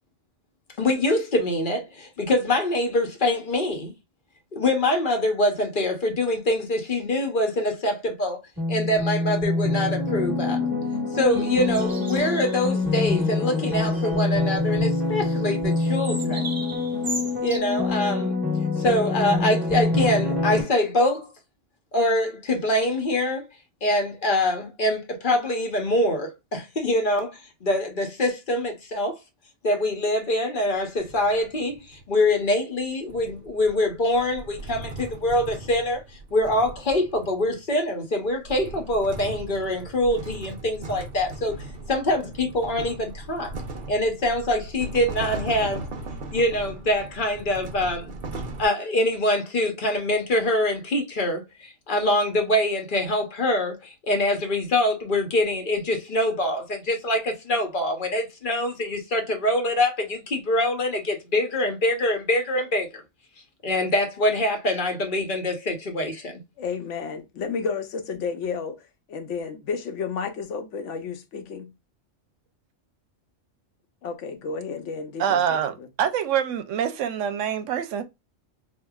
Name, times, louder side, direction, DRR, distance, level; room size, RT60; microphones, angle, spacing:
voice 1, 0.8-3.9 4.5-8.4 8.7-10.6 11.1-16.5 17.4-18.4 18.8-21.3 21.9-23.5 23.8-29.2 29.6-43.5 43.9-45.8 46.3-48.1 48.6-63.0 63.6-66.4, left 1 dB, 45° left, 0.9 m, -24 dB
sound 1, 8.6-20.6, left 3 dB, 10° right, 1.4 m, -25 dB
sound 2, 11.3-12.7 13.1-13.3 13.6-14.2 15.7-17.6, right 3 dB, 35° right, 0.3 m, -37 dB
sound 3, 30.8-32.1 33.1-37.7 38.2-48.7, right 2 dB, 55° right, 0.9 m, -38 dB
voice 2, 66.6-71.7 74.0-75.9, left 5 dB, 80° left, 1.0 m, -32 dB
voice 3, 75.2-78.0, right 9 dB, 85° right, 0.9 m, -25 dB
4.7 x 2.4 x 2.3 m
omnidirectional pair, 1.2 m